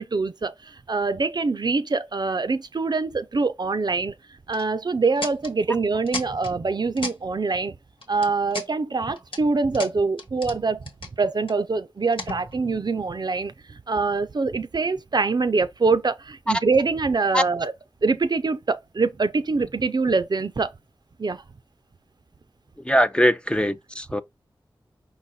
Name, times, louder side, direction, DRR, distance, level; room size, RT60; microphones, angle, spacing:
voice 1, 0.0-4.1 4.5-7.7 8.1-10.9 11.2-17.7 18.0-20.7 21.2-21.4, right 4 dB, 55° right, 0.5 m, -24 dB
sound 1, 4.5-4.7 5.2-5.5 6.1-6.5 7.0-7.2 8.0-8.7 9.1-9.4 9.7-10.6 10.8-11.5 12.1-12.8, left 2 dB, 80° left, 1.4 m, -34 dB
voice 2, 22.8-24.2, equal, 10° left, 0.5 m, -21 dB
5.4 x 2.3 x 4.1 m
wide cardioid pair, 75°, 9 cm